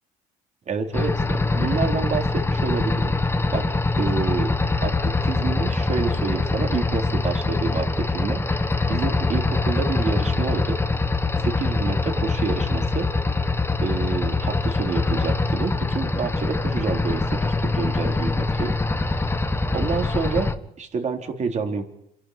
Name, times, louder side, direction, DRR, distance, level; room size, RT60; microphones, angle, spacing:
voice 1, 0.7-4.5 4.8-8.6 8.9-10.8 11.4-13.1 13.8-18.7 19.7-20.5 20.8-21.9, right 5 dB, 45° right, 3 dB, 3.9 m, -28 dB
sound 1, 0.9-20.5, left 3 dB, 15° left, 1.4 m, -23 dB
28.0 x 11.5 x 9.6 m, 0.79 s
cardioid pair, 110°, 17 cm